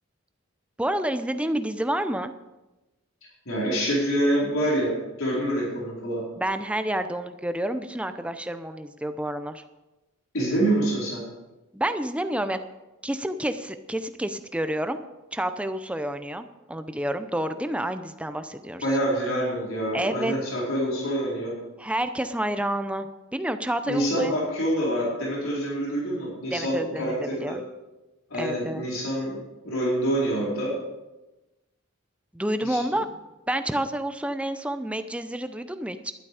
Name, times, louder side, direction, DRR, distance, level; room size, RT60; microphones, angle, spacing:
voice 1, 0.8-2.3 6.4-9.6 11.7-12.6 13.0-15.0 15.3-18.9 19.9-20.3 21.8-24.4 26.5-27.6 28.4-28.8 32.3-33.1 33.5-36.1, right 1 dB, 5° right, 9 dB, 0.6 m, -29 dB
voice 2, 3.5-6.2 10.3-11.2 18.8-21.5 23.8-27.5 28.3-30.7 32.6-32.8, right 1 dB, 75° left, -5 dB, 4.6 m, -26 dB
12.0 x 11.5 x 4.9 m, 1.0 s
head